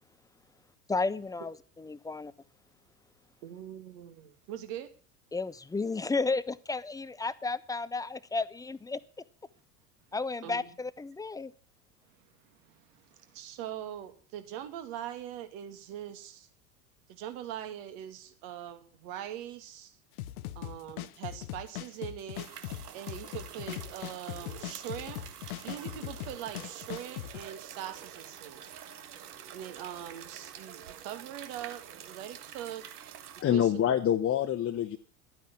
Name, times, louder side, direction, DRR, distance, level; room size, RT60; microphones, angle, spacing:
voice 1, 0.9-2.3 5.3-9.0 10.1-11.5, left 3 dB, 10° left, 0.5 m, -33 dB
voice 2, 3.4-4.9 10.4-10.7 12.4-16.5 17.1-20.0 20.6-22.5 22.9-25.2 25.6-28.7 29.5-32.8 33.5-33.9, right 11 dB, 55° right, 2.4 m, -42 dB
sound 1, 20.2-27.4, left 14 dB, 60° left, 1.1 m, -40 dB
sound 2, 22.3-33.4, right 10 dB, 70° right, 1.7 m, -47 dB
voice 3, 33.4-35.0, left 10 dB, 30° left, 1.1 m, -26 dB
12.0 x 9.2 x 7.0 m
hypercardioid pair, 80°, 47 cm